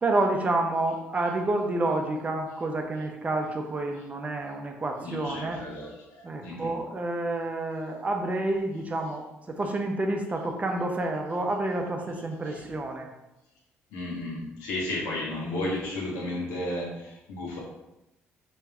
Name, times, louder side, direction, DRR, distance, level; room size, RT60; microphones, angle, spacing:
voice 1, 0.0-5.7 6.2-13.1, right 2 dB, 30° right, 3 dB, 0.7 m, -29 dB
voice 2, 5.0-6.8 12.4-12.6 13.9-17.6, left 1 dB, 85° left, -4 dB, 1.3 m, -33 dB
3.4 x 3.1 x 3.4 m, 0.91 s
supercardioid pair, 75°, 5 cm